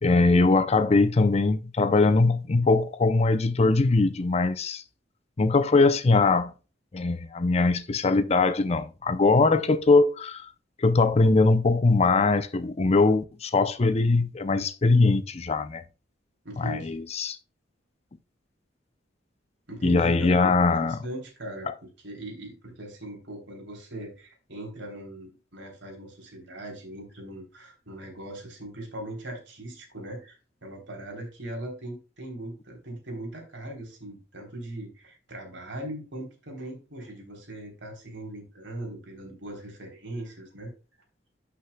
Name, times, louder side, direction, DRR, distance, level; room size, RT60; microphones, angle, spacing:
voice 1, 0.0-4.8 5.4-6.5 6.9-10.5 10.8-15.8 16.6-17.4 19.8-21.0, left 3 dB, 35° left, 0.5 m, -21 dB
voice 2, 16.4-17.0 19.7-40.7, right 1 dB, 65° right, 3.4 m, -40 dB
11.5 x 6.1 x 2.2 m
head